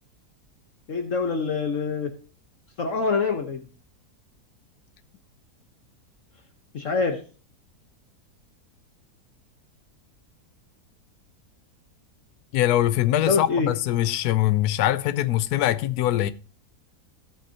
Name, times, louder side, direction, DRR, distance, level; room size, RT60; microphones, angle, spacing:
voice 1, 0.9-2.1 2.8-3.6 6.7-7.2 13.2-13.7, left 4 dB, 55° left, 1.4 m, -25 dB
voice 2, 12.5-16.3, left 13 dB, 75° left, 1.1 m, -22 dB
16.5 x 6.0 x 2.8 m
omnidirectional pair, 1.7 m